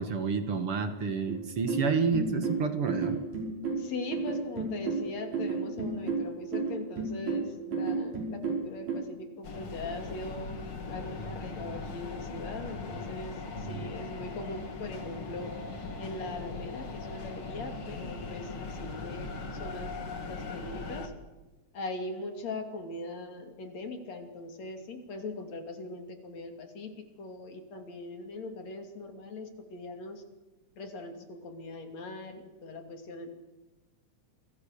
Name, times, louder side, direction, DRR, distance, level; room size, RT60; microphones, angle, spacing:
voice 1, 0.0-3.2, right 5 dB, 55° right, 8 dB, 2.4 m, -29 dB
sound 1, 1.3-9.0, right 4 dB, 75° right, 6.9 m, -32 dB
voice 2, 3.8-10.6 10.9-15.5 16.0-19.3 19.6-20.0 20.3-21.1 21.7-26.9 27.2-30.2 30.8-33.4, left 2 dB, 65° left, 6 dB, 4.0 m, -40 dB
sound 2, 9.4-21.1, left 3 dB, 45° left, 3.1 m, -39 dB
28.5 x 23.5 x 6.8 m, 1.2 s
omnidirectional pair, 3.3 m